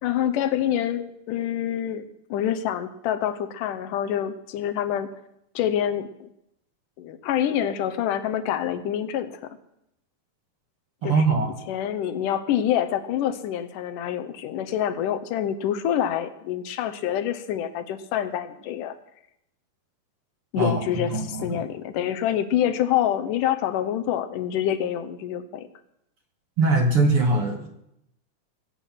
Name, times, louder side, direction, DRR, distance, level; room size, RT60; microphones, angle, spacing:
voice 1, 0.0-5.1 5.6-6.3 7.0-9.6 11.0-19.0 20.5-25.7, left 10 dB, 75° left, 10 dB, 2.1 m, -26 dB
voice 2, 11.0-11.5 20.6-21.6 26.6-27.7, right 3 dB, 50° right, 2 dB, 1.9 m, -22 dB
21.0 x 8.9 x 5.8 m, 0.80 s
omnidirectional pair, 4.4 m